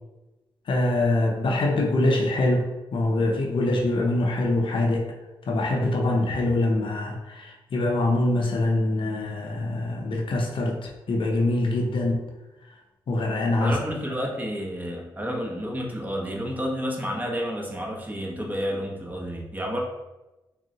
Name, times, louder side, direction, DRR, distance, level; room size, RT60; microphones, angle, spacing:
voice 1, 0.7-2.6 2.9-5.1 5.5-12.2 13.1-13.8, left 2 dB, 65° left, 0 dB, 0.5 m, -24 dB
voice 2, 13.6-19.8, equal, 20° right, -2 dB, 0.7 m, -30 dB
3.7 x 2.0 x 2.7 m, 1.1 s
cardioid pair, 75°, 9 cm